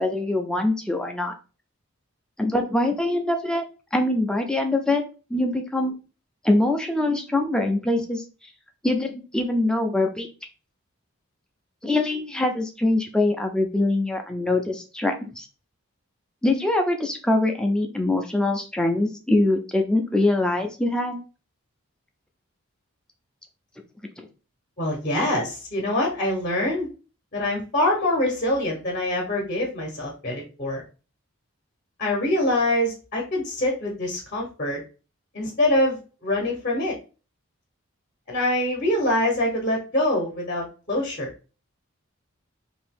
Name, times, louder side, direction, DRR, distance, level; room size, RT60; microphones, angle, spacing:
voice 1, 0.0-1.3 2.4-3.6 3.9-5.0 5.3-5.9 6.4-8.2 8.8-10.3 11.8-15.5 16.4-21.2 24.2-24.3, left 2 dB, 5° left, 3 dB, 0.3 m, -23 dB
voice 2, 24.8-26.9 27.3-30.8 32.0-34.8 35.3-37.0 38.3-41.3, left 1 dB, 40° left, 0 dB, 0.7 m, -24 dB
2.7 x 2.6 x 3.4 m, 0.34 s
head